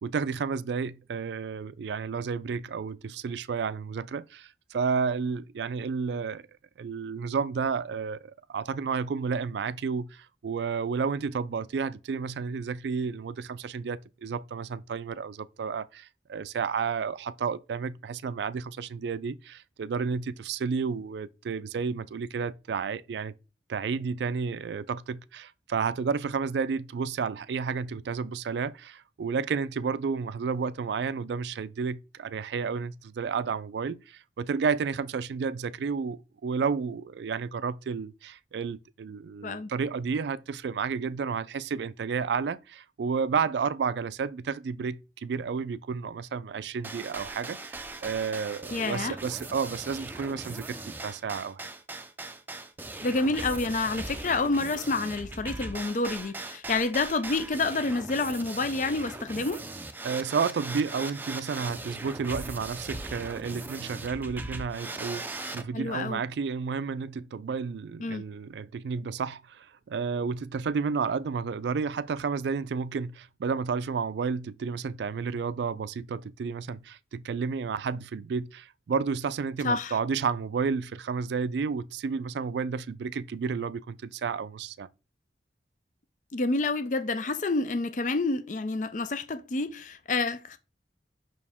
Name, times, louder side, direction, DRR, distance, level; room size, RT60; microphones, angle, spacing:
voice 1, 0.0-6.4 6.8-23.3 23.7-51.7 60.0-84.9, right 5 dB, 70° right, 0.3 m, -31 dB
sound 1, 46.8-65.6, right 2 dB, 10° right, 0.5 m, -39 dB
voice 2, 48.7-49.2 53.0-59.6 65.7-66.2 68.0-68.2 79.6-80.0 86.3-90.6, left 3 dB, 45° left, 0.5 m, -28 dB
5.7 x 4.8 x 3.5 m
head